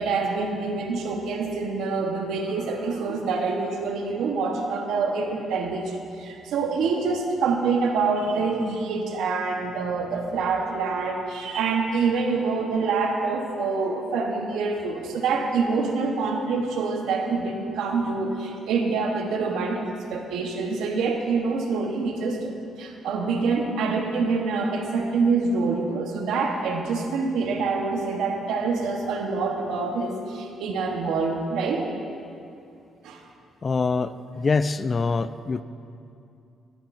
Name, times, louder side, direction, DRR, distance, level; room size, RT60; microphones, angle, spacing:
voice 1, 0.0-22.5 22.8-31.9 33.0-33.2, right 4 dB, 85° right, 2 dB, 1.2 m, -26 dB
voice 2, 33.6-35.6, left 4 dB, 35° left, 13 dB, 0.3 m, -24 dB
14.0 x 11.0 x 2.6 m, 2.6 s
cardioid pair, 90°, 0 cm